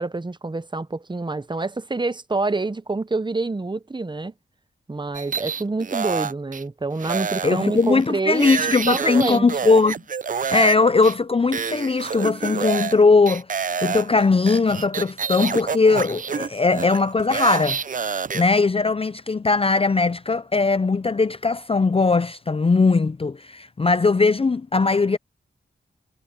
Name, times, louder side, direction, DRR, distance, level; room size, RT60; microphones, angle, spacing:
voice 1, 0.0-4.3 4.9-8.5 8.9-9.5, right 3 dB, 20° right, 0.8 m, -27 dB
sound 1, 5.1-6.6 7.0-10.8 11.0-11.1 11.5-13.0 13.3-18.4, right 6 dB, 40° right, 0.5 m, -28 dB
voice 2, 7.4-10.0 10.5-13.5 13.8-17.8 18.3-25.2, left 4 dB, 25° left, 0.5 m, -19 dB
wide cardioid pair, 70°, 21 cm